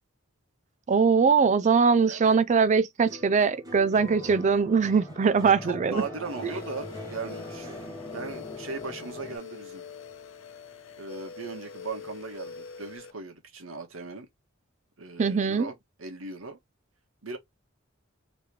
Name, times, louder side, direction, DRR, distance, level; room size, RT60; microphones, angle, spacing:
voice 1, 0.9-6.0 6.4-6.5 15.2-15.7, right 5 dB, 35° right, 0.4 m, -22 dB
voice 2, 2.0-2.4 5.4-7.7 8.1-9.8 11.0-14.3 15.0-16.6 17.2-17.4, right 4 dB, 90° right, 1.3 m, -38 dB
sound 1, 3.1-11.5 11.8-12.5, equal, 20° right, 1.2 m, -46 dB
sound 2, 3.9-9.4, left 2 dB, 20° left, 0.7 m, -44 dB
sound 3, 6.2-13.1, left 6 dB, 70° left, 0.7 m, -44 dB
3.2 x 3.1 x 3.2 m
head